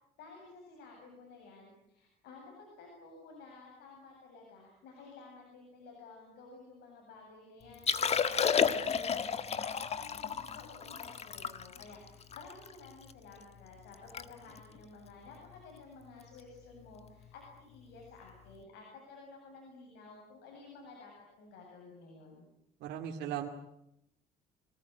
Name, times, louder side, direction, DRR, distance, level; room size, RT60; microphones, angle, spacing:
voice 1, 0.2-21.1 21.4-22.5, left 3 dB, 80° left, 0 dB, 7.9 m, -53 dB
Liquid, 7.7-13.1 13.6-13.7 13.9-14.3 14.5-14.8 15.4-15.6 17.1-17.2, left 7 dB, 40° left, 1.6 m, -32 dB
voice 2, 22.8-23.5, right 10 dB, 80° right, 1 dB, 2.6 m, -37 dB
26.5 x 19.5 x 9.3 m, 0.82 s
cardioid pair, 110°, 17 cm